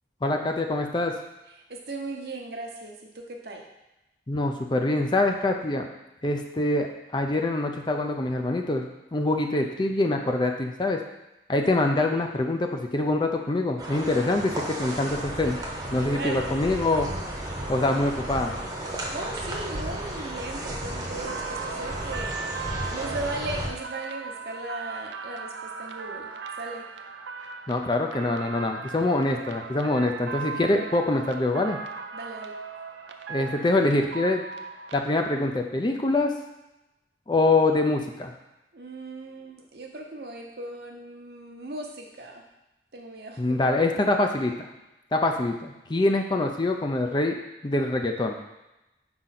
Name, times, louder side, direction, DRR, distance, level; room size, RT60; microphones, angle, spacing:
voice 1, 0.2-1.2 4.3-5.8 6.2-8.8 9.1-11.0 11.5-15.6 15.9-17.1 17.7-18.5 27.7-31.8 33.3-34.4 34.9-36.3 37.3-38.3 43.4-44.7 45.1-48.4, left 2 dB, 25° left, 3 dB, 0.5 m, -25 dB
voice 2, 1.6-3.6 16.1-16.4 19.1-22.3 22.9-26.9 29.9-30.4 32.1-32.5 38.7-42.4 42.9-43.6, right 2 dB, 60° right, 1 dB, 0.9 m, -37 dB
sound 1, 13.8-23.7, right 1 dB, 20° right, 0.9 m, -33 dB
sound 2, 21.3-35.0, right 5 dB, 85° right, 0.5 m, -38 dB
4.9 x 4.0 x 5.8 m, 0.96 s
head